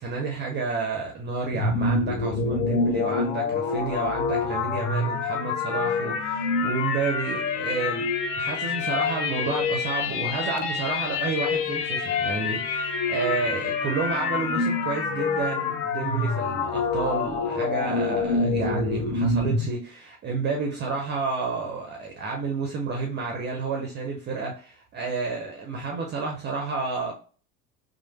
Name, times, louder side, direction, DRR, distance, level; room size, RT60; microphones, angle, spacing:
voice 1, 0.0-8.1 8.4-27.1, right 4 dB, 25° right, 1 dB, 0.5 m, -30 dB
Robotic start up and shut down, 1.5-19.7, left 4 dB, 55° left, 0.6 m, -26 dB
Wind instrument woodwind instrument, 12.0-15.8, left 2 dB, 20° left, 1.1 m, -45 dB
3.1 x 2.1 x 2.9 m, 0.39 s
figure-of-eight pair, 75°, 45 cm